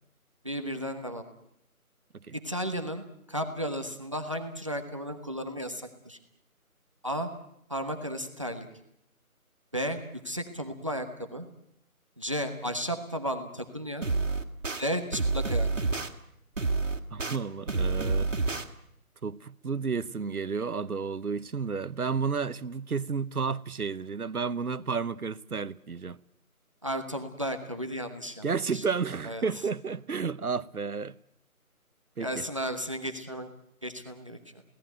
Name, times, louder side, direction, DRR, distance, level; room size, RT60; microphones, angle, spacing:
voice 1, 0.4-1.2 2.4-6.2 7.0-7.3 7.7-8.7 9.7-10.0 10.2-11.4 12.2-14.1 14.8-15.7 26.8-28.4 28.7-28.8 29.2-29.4 32.2-33.5 33.8-34.6, equal, 20° right, 1.2 m, -34 dB
sound 1, 14.0-14.8 15.1-16.1 16.6-17.4 17.7-18.6, right 3 dB, 55° right, 2.3 m, -28 dB
voice 2, 17.1-18.3 19.2-26.2 28.4-31.2 32.2-32.4, right 5 dB, 80° right, 1.1 m, -31 dB
28.5 x 17.5 x 9.2 m
figure-of-eight pair, 175°, 44 cm